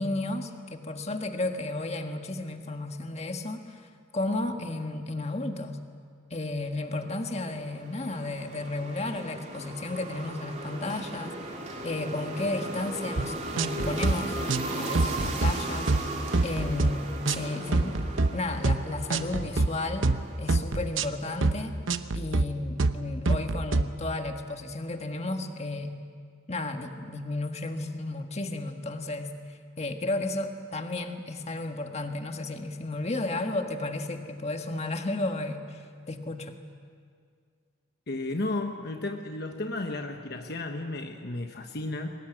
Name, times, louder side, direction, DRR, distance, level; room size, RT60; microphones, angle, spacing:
voice 1, 0.0-3.9 4.1-5.8 6.3-11.5 11.8-14.4 14.7-15.9 16.4-17.9 18.3-20.1 20.4-21.8 22.1-25.9 26.5-29.3 29.8-36.6, left 2 dB, 35° left, 5 dB, 1.6 m, -33 dB
sound 1, 7.1-21.4, right 2 dB, 35° right, 3.1 m, -37 dB
sound 2, 13.2-13.3 13.6-14.1 14.5-14.7 15.0-15.5 15.9-16.1 16.3-16.9 17.3-17.4 17.7-18.3 18.6-18.8 19.1-19.7 20.0-20.2 20.5-21.1 21.4-21.6 21.9-22.5 22.8-23.0 23.3-23.8, right 3 dB, 80° right, 0.9 m, -25 dB
voice 2, 38.1-42.1, left 2 dB, 55° left, 5 dB, 1.2 m, -33 dB
23.5 x 20.0 x 9.2 m, 2.1 s
head